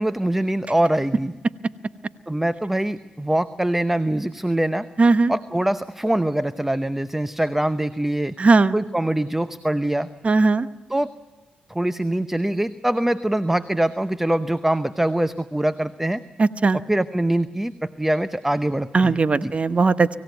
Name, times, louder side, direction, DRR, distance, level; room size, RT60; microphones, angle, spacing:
voice 1, 0.0-1.3 2.3-4.9 5.3-8.3 8.7-10.1 10.9-11.1 11.7-16.2 16.7-19.5, right 1 dB, 10° right, 13 dB, 0.8 m, -23 dB
voice 2, 5.0-5.3 8.4-8.8 10.2-10.7 16.4-16.8 18.9-20.2, right 3 dB, 45° right, 13 dB, 1.0 m, -18 dB
25.5 x 16.5 x 9.2 m, 1.3 s
supercardioid pair, 50°, 3 cm